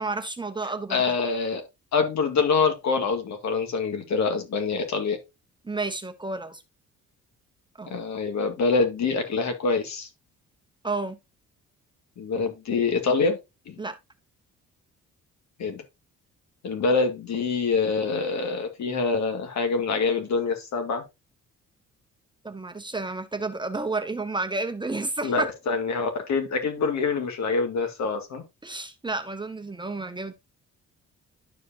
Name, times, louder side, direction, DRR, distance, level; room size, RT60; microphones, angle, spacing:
voice 1, 0.0-1.0 5.6-6.6 7.8-7.9 10.8-11.2 13.8-14.0 22.4-25.5 28.6-30.3, right 3 dB, 15° right, 0.9 m, -31 dB
voice 2, 0.9-1.6 1.9-5.2 7.9-10.1 12.2-13.4 13.7-13.8 15.6-15.8 16.6-21.0 25.2-28.4, left 4 dB, 65° left, 2.1 m, -25 dB
11.5 x 4.9 x 2.8 m
cardioid pair, 90°, 30 cm